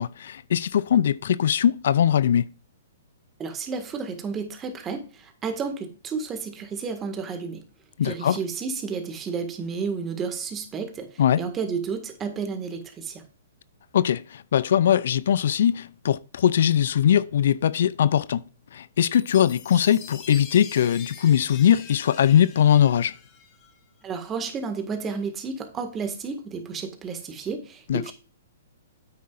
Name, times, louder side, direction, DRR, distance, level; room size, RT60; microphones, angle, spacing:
voice 1, 0.0-2.5 8.0-8.4 11.2-11.4 13.9-18.5 18.7-23.2 27.9-28.1, left 9 dB, 65° left, 0.3 m, -21 dB
voice 2, 3.4-7.6 8.0-13.2 24.0-28.1, right 5 dB, 20° right, 1.8 m, -32 dB
Chime, 19.1-23.7, left 6 dB, 30° left, 2.0 m, -44 dB
9.5 x 8.5 x 2.5 m
hypercardioid pair, 130°, 0 cm